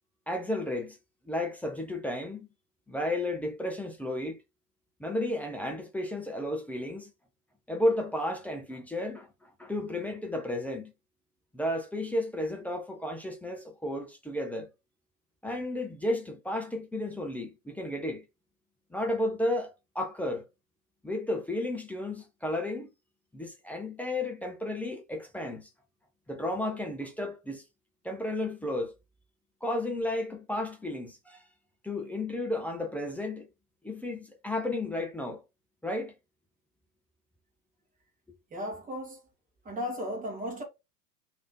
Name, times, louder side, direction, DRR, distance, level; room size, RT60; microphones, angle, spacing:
voice 1, 0.3-1.0 1.3-2.5 2.9-4.4 5.0-7.1 7.7-10.9 11.5-14.7 15.4-18.2 18.9-20.4 21.0-22.9 23.3-25.7 26.3-27.6 28.0-28.9 29.6-31.4 31.8-33.5 33.8-35.4 35.8-36.1, left 1 dB, 5° left, 0.6 m, -33 dB
voice 2, 38.5-39.2 39.6-40.6, equal, 15° right, 1.9 m, -35 dB
3.4 x 3.3 x 3.8 m
figure-of-eight pair, 90°, 48 cm